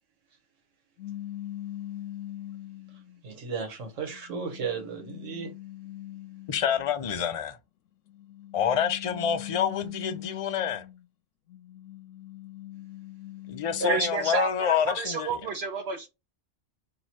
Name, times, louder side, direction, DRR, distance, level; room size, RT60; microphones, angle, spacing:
sound 1, 1.0-3.2 3.8-6.9 8.1-11.0 11.5-14.5, left 13 dB, 85° left, 0.9 m, -42 dB
voice 1, 3.2-5.5, right 5 dB, 90° right, 1.4 m, -34 dB
voice 2, 6.5-7.6 8.5-10.8 13.5-15.4, left 8 dB, 45° left, 0.4 m, -27 dB
voice 3, 13.8-16.1, right 5 dB, 65° right, 0.8 m, -30 dB
3.0 x 2.9 x 4.1 m
omnidirectional pair, 1.3 m